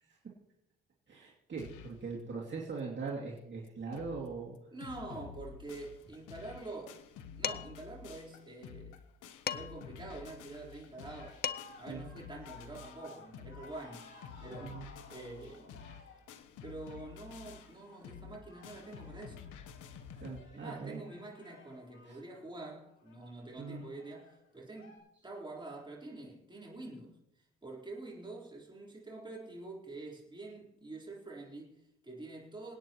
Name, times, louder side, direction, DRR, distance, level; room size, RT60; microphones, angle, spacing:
voice 1, 1.1-4.5 11.9-12.0 14.6-14.9 20.2-21.0 22.0-22.2 23.6-23.9, right 4 dB, 40° right, 2.7 m, -41 dB
sound 1, 1.6-2.0 2.5-2.6 2.8-2.9 3.4-3.5 3.7-4.3 4.5-20.4, left 7 dB, 85° left, 1.1 m, -50 dB
voice 2, 4.7-7.0 7.3-9.0 9.5-11.4 11.8-14.8 15.1-15.8 16.6-19.4 20.5-27.2 27.6-32.7, right 2 dB, 15° right, 4.3 m, -46 dB
Dishes pots and pans, 7.4-7.9 9.5-9.9 11.1-11.2 11.4-11.9, left 7 dB, 30° left, 0.6 m, -37 dB
sound 2, 11.2-25.0, left 3 dB, 70° left, 6.1 m, -57 dB
27.5 x 9.2 x 3.1 m
cardioid pair, 90°, 30 cm